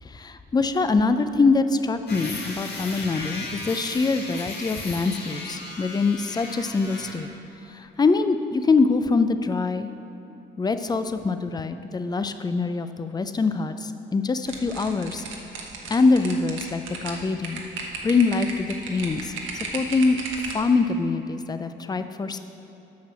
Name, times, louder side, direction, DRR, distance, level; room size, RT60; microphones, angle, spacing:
voice 1, 0.0-7.3 7.7-9.9 10.6-15.2 15.9-17.6 18.0-19.3 19.7-22.4, left 4 dB, 20° left, 10 dB, 0.5 m, -24 dB
sound 1, 2.1-7.2, left 2 dB, 55° left, 1.7 m, -36 dB
sound 2, 14.5-20.7, right 4 dB, 80° right, 1.2 m, -35 dB
8.5 x 6.0 x 5.9 m, 3.0 s
cardioid pair, 90°, 20 cm